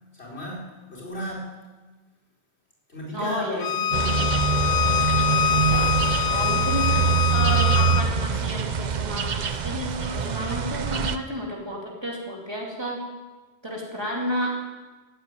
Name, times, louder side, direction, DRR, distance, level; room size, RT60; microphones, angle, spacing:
voice 1, 0.1-1.6 2.9-4.4, equal, 80° left, -5 dB, 4.7 m, -34 dB
voice 2, 3.1-3.7 6.2-13.0 13.6-14.6, equal, 25° right, -3 dB, 2.8 m, -31 dB
Bowed string instrument, 3.6-8.0, left 9 dB, 65° left, 0.8 m, -24 dB
sound 1, 3.9-11.2, right 6 dB, 50° right, 0.7 m, -24 dB
sound 2, 5.7-7.2, left 1 dB, 20° left, 1.1 m, -39 dB
14.0 x 8.1 x 9.3 m, 1.2 s
omnidirectional pair, 1.1 m